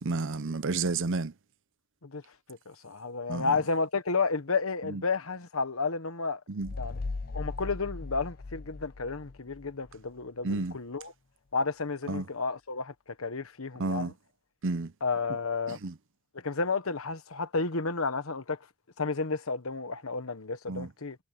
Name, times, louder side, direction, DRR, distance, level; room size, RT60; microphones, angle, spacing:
voice 1, 0.0-1.3 3.3-3.5 4.9-5.0 6.5-6.7 10.4-10.7 12.1-12.2 13.8-14.1 14.6-14.9 15.7-15.9 20.7-20.9, right 3 dB, 60° right, 0.7 m, -31 dB
voice 2, 2.5-6.4 6.8-7.0 7.3-11.1 11.5-14.1 15.0-15.8 16.4-18.6 19.0-21.2, left 4 dB, 70° left, 1.3 m, -32 dB
sound 1, 6.6-10.0, left 3 dB, 40° left, 0.5 m, -38 dB
head